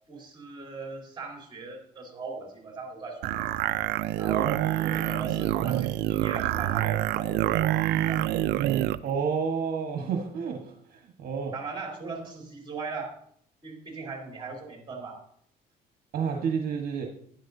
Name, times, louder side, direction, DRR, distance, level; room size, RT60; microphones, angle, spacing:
voice 1, 0.1-3.5 4.2-8.3 8.9-9.0 11.5-13.2 13.6-15.2, right 4 dB, 30° right, 0 dB, 3.6 m, -39 dB
sound 1, 3.2-9.0, right 14 dB, 80° right, 0.4 m, -26 dB
voice 2, 9.0-11.5 16.1-17.1, right 6 dB, 60° right, 2 dB, 1.4 m, -30 dB
11.0 x 10.5 x 2.7 m, 0.64 s
cardioid pair, 110°, 17 cm